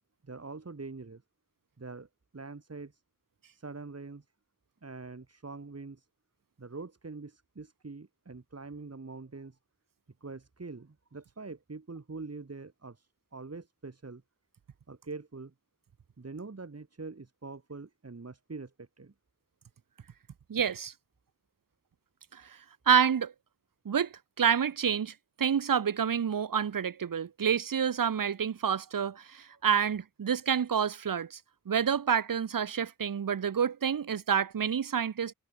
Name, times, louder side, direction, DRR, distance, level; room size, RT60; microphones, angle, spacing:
voice 1, 0.2-1.2 1.8-2.1 2.3-3.0 3.5-4.3 4.8-6.1 6.6-9.6 10.2-14.2 14.9-15.5 16.2-19.1, right 3 dB, 45° right, 1.9 m, -44 dB
voice 2, 20.5-20.9 22.3-22.4 22.9-23.3 23.8-31.4 31.7-35.3, right 7 dB, 75° right, 0.8 m, -28 dB
wide cardioid pair, 65°, 34 cm